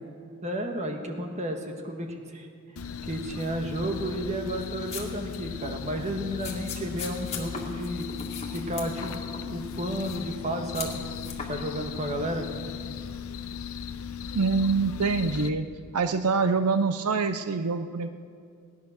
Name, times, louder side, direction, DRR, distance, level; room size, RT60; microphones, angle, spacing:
voice 1, 0.4-2.5 3.0-8.1 8.5-9.1 9.4-11.0 11.5-12.5, right 1 dB, 30° right, 4 dB, 1.5 m, -32 dB
sound 1, 2.8-15.5, left 7 dB, 70° left, 0.8 m, -37 dB
sound 2, 4.6-5.4 5.6-5.8 6.4-9.4 9.7-10.3 10.7-11.5, left 5 dB, 30° left, 2.1 m, -39 dB
voice 2, 14.3-15.7 15.9-18.1, right 4 dB, 90° right, 10 dB, 0.6 m, -25 dB
17.5 x 10.5 x 6.5 m, 2.3 s
head